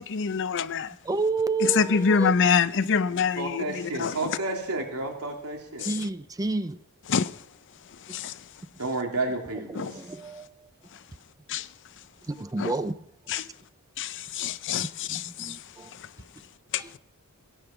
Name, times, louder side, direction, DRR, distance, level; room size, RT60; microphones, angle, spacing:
voice 1, 0.0-0.9 1.6-4.4 5.8-5.9 7.1-7.3 8.1-8.3 9.8-9.9 11.5-11.7 12.6-12.7 13.3-13.5 14.0-15.6 16.7-16.8, left 6 dB, 55° left, 0.6 m, -26 dB
voice 2, 1.0-2.3 5.9-6.8 9.7-10.7 12.3-13.0 13.3-13.4 15.1-15.9 16.8-16.9, right 3 dB, 15° right, 0.4 m, -30 dB
voice 3, 3.1-5.9 8.8-10.0, right 2 dB, 90° right, 3.0 m, -31 dB
17.0 x 8.9 x 5.8 m
head